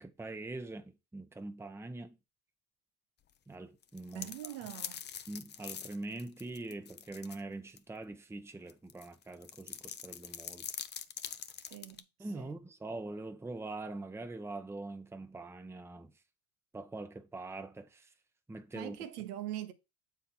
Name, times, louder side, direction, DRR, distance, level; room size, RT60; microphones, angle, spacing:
voice 1, 0.0-2.2 3.5-4.3 5.3-10.7 12.2-16.1 16.7-18.1 18.5-19.0, right 2 dB, 5° right, 0.7 m, -43 dB
sound 1, 3.8-7.4 7.8-7.9 8.7-12.0, left 8 dB, 25° left, 0.5 m, -44 dB
voice 2, 4.1-5.1 11.6-12.6 18.7-19.7, right 13 dB, 80° right, 1.0 m, -43 dB
7.0 x 4.1 x 4.4 m
supercardioid pair, 90°, 45 cm